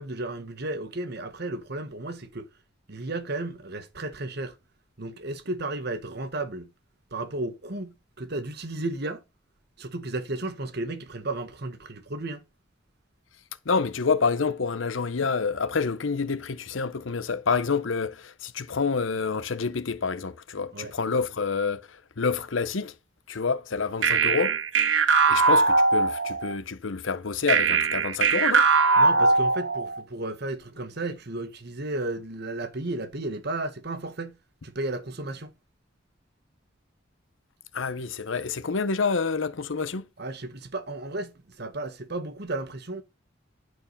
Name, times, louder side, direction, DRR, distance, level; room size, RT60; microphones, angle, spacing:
voice 1, 0.0-2.5 2.9-4.5 5.0-6.7 7.1-9.2 9.8-12.4 20.7-20.9 29.0-34.4 34.6-35.5 40.2-43.0, right 2 dB, 60° right, 1.4 m, -33 dB
voice 2, 13.7-22.9 23.3-24.6 25.3-28.7 37.7-40.1, left 5 dB, 90° left, 0.8 m, -28 dB
sound 1, 24.0-26.5 27.5-30.0, right 4 dB, 80° right, 1.3 m, -21 dB
11.0 x 4.7 x 5.4 m
head